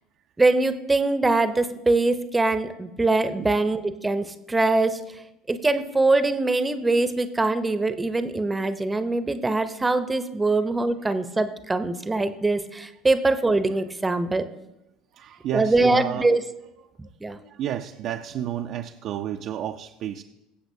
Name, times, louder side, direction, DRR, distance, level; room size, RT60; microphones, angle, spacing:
voice 1, 0.4-5.0 5.5-14.4 15.5-16.4 17.2-17.4, right 2 dB, 15° right, 11 dB, 0.8 m, -23 dB
voice 2, 15.1-16.3 17.4-20.2, right 11 dB, 55° right, 5 dB, 0.5 m, -31 dB
22.0 x 7.8 x 2.8 m, 0.92 s
hypercardioid pair, 65°, 0 cm